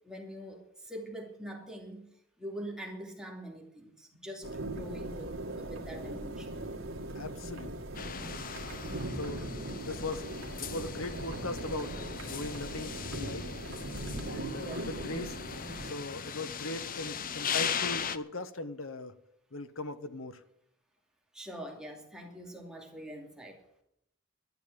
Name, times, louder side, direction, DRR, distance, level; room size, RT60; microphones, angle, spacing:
voice 1, 0.0-2.1 2.4-6.6 9.8-10.0 14.6-14.8 21.3-23.6, equal, 5° right, 0 dB, 2.6 m, -44 dB
sound 1, 4.4-15.9, right 1 dB, 85° right, 2.0 m, -40 dB
voice 2, 7.1-7.8 9.1-9.5 9.8-10.3 10.5-13.5 14.3-15.4 15.8-19.2 19.5-20.4, left 2 dB, 80° left, 11 dB, 1.2 m, -39 dB
sound 2, 7.9-18.2, left 7 dB, 45° left, 0.8 m, -38 dB
12.0 x 10.5 x 8.5 m, 0.77 s
head